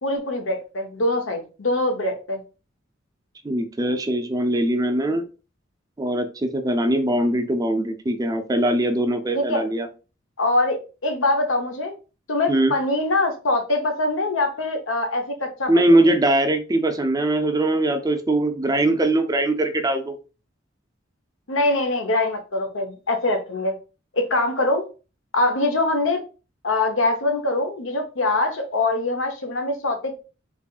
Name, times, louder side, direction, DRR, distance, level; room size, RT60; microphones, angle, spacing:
voice 1, 0.0-2.4 9.3-9.6 10.4-11.9 12.3-15.7 16.0-16.1 21.5-23.8 24.1-24.8 25.3-26.2 26.6-30.1, left 2 dB, 80° left, 5 dB, 0.9 m, -23 dB
voice 2, 3.4-5.2 6.0-9.9 12.5-12.7 15.7-20.2, right 1 dB, 20° right, 7 dB, 0.4 m, -21 dB
3.6 x 3.3 x 2.3 m, 0.33 s
head